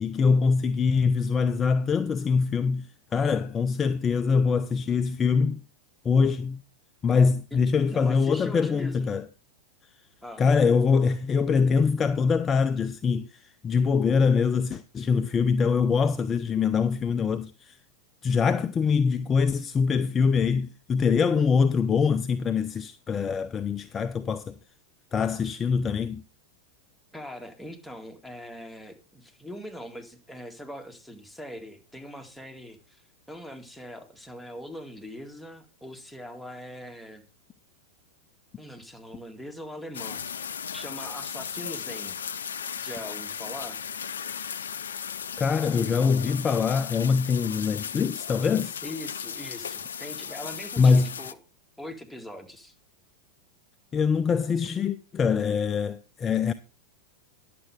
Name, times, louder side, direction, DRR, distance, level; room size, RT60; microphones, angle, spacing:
voice 1, 0.0-5.6 6.0-6.6 7.0-9.2 10.4-17.8 18.2-24.5 25.1-26.2 45.4-48.8 50.8-51.1 53.9-56.5, left 5 dB, 25° left, 0.6 m, -24 dB
voice 2, 7.9-9.1 10.2-10.4 27.1-33.0 33.3-37.3 38.6-40.2 40.7-42.2 42.8-43.8 48.8-51.4 51.8-52.7, left 1 dB, ahead, 2.1 m, -41 dB
sound 1, 39.9-51.3, left 7 dB, 75° left, 0.6 m, -36 dB
11.0 x 7.7 x 4.8 m
figure-of-eight pair, 95°, 0 cm